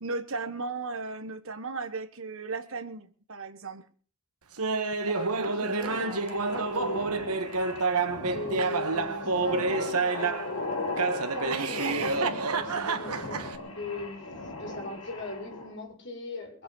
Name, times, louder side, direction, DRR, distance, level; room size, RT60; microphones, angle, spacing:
voice 1, 0.0-3.8, right 3 dB, 60° right, 1.5 m, -36 dB
Laughter, 4.6-10.5 11.0-13.6, right 4 dB, 85° right, 1.6 m, -29 dB
voice 2, 5.1-7.1 8.2-11.0 11.3-14.3 14.6-16.6, left 2 dB, 55° left, 6.0 m, -39 dB
sound 1, 5.8-15.7, left 2 dB, 70° left, 4.7 m, -38 dB
22.0 x 8.2 x 6.4 m
head